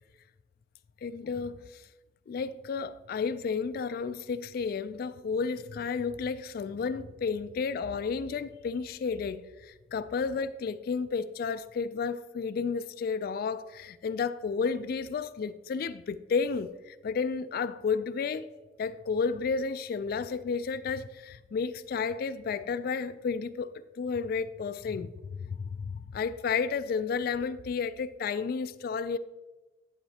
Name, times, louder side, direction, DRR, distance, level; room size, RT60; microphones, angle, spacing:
voice 1, 1.0-1.8 2.3-18.5 18.8-23.7 24.0-29.2, left 5 dB, 55° left, 0.3 m, -32 dB
11.0 x 9.4 x 2.8 m
head